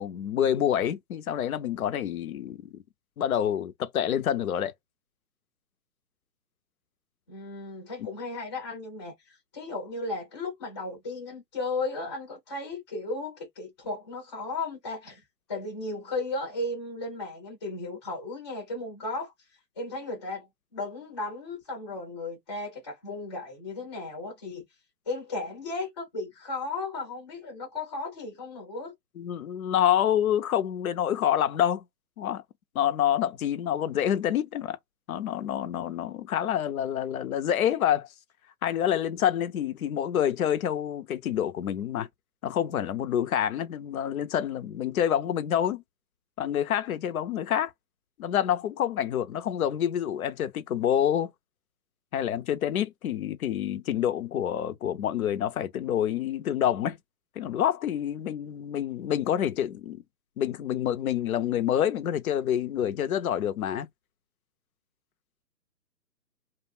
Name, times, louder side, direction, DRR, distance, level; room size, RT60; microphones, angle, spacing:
voice 1, 0.0-2.6 3.2-4.7 8.0-8.1 29.2-31.8 32.2-32.4 32.7-34.8 35.1-38.1 38.6-42.1 42.4-45.8 46.4-47.7 48.2-51.3 52.1-57.0 57.4-60.0 60.4-63.9, left 10 dB, 60° left, 0.6 m, -27 dB
voice 2, 7.3-15.2 15.5-19.3 19.8-20.5 20.7-24.6 25.1-28.9, left 2 dB, 15° left, 0.6 m, -35 dB
2.4 x 2.1 x 3.2 m
hypercardioid pair, 150°, 50 cm